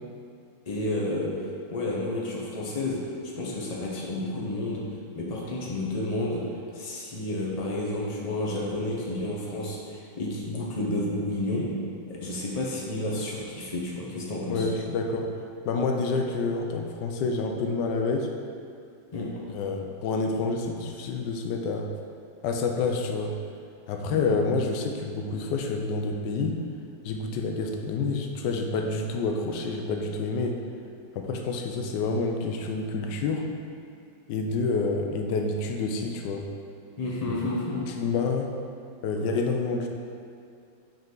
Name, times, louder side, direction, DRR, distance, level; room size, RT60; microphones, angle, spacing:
voice 1, 0.7-1.3 1.7-3.0 3.4-4.8 5.1-6.4 6.7-11.7 12.1-14.7 19.1-19.3 24.1-24.2 37.0-37.9, left 1 dB, 40° left, -4 dB, 0.6 m, -30 dB
voice 2, 14.5-15.3 15.6-18.3 19.5-21.9 22.4-23.4 23.9-26.6 27.0-30.6 31.1-33.5 34.3-36.5 37.3-37.4 37.9-38.5 39.0-39.9, left 3 dB, 70° left, 3 dB, 1.2 m, -28 dB
5.9 x 5.4 x 3.8 m, 2.4 s
omnidirectional pair, 2.1 m